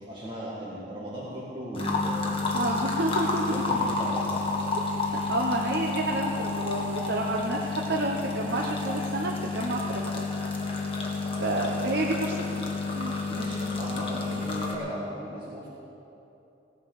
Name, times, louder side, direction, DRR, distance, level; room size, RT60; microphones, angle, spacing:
voice 1, 0.1-2.7 3.2-4.4 13.3-15.7, equal, 25° right, -7 dB, 1.9 m, -37 dB
sound 1, 1.7-14.8, left 3 dB, 30° left, 1.7 m, -30 dB
voice 2, 2.5-3.6 5.1-10.2 11.4-12.6 13.0-13.1, right 2 dB, 65° right, -1 dB, 1.0 m, -30 dB
17.0 x 9.3 x 6.6 m, 3.0 s
head